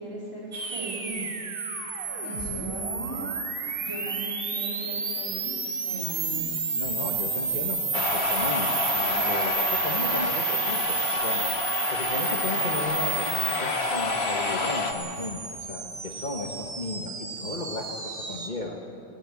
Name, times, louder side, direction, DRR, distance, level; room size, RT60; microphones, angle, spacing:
voice 1, 0.0-1.4 2.2-3.3 3.8-5.5 5.9-6.5, right 1 dB, 30° left, -5 dB, 3.8 m, -37 dB
sound 1, 0.5-18.5, right 4 dB, 60° right, 1.5 m, -31 dB
voice 2, 6.7-11.5 11.9-18.8, left 3 dB, 45° left, 1 dB, 1.5 m, -35 dB
sound 2, 7.9-14.9, left 3 dB, 75° left, 1.6 m, -29 dB
19.0 x 16.5 x 8.7 m, 2.5 s
omnidirectional pair, 1.1 m